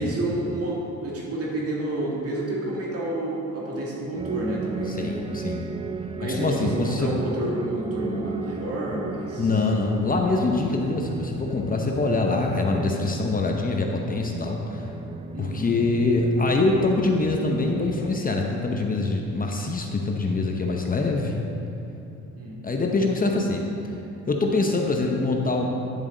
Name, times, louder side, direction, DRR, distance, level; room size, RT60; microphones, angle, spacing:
voice 1, 0.0-5.2 6.2-9.5 15.3-15.7 22.4-22.6, right 1 dB, 50° right, -4 dB, 2.2 m, -29 dB
sound 1, 4.1-18.2, right 4 dB, 20° right, 0.3 m, -36 dB
voice 2, 4.9-5.7 6.2-7.1 9.4-14.8 15.4-21.4 22.6-23.7 24.3-25.7, left 3 dB, 30° left, 1 dB, 0.9 m, -24 dB
10.5 x 7.0 x 3.9 m, 2.8 s
cardioid pair, 90°, 30 cm